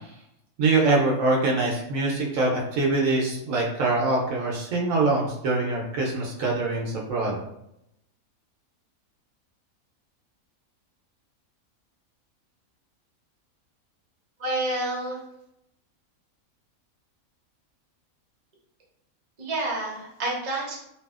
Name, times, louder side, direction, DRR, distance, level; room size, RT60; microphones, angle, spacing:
voice 1, 0.6-7.4, right 3 dB, 75° right, -2 dB, 1.0 m, -24 dB
voice 2, 14.4-15.2 19.4-20.8, right 2 dB, 35° right, -4 dB, 0.7 m, -28 dB
2.7 x 2.6 x 2.3 m, 0.80 s
omnidirectional pair, 1.5 m